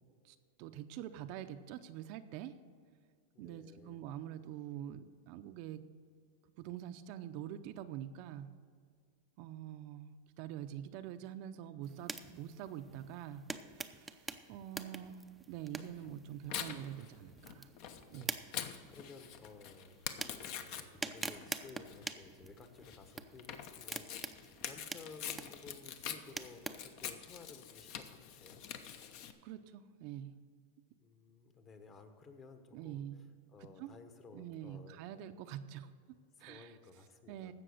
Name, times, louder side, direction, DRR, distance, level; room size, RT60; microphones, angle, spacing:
voice 1, 0.2-2.6 3.4-5.8 6.6-8.5 9.4-13.4 13.8-15.2 15.5-17.7 18.1-18.4 29.4-30.4 32.7-33.2 33.6-33.9 34.3-36.8 37.3-37.5, right 11 dB, 50° right, 9 dB, 0.6 m, -46 dB
voice 2, 3.3-4.0 18.1-18.6 18.9-28.6 31.0-33.0 33.5-35.0 36.4-37.5, left 4 dB, 25° left, 7 dB, 1.2 m, -56 dB
sound 1, 11.8-26.9, right 3 dB, 5° right, 0.5 m, -47 dB
Tearing, 15.8-29.3, left 9 dB, 50° left, 0.9 m, -46 dB
15.5 x 5.9 x 6.5 m, 2.1 s
supercardioid pair, 140°, 0 cm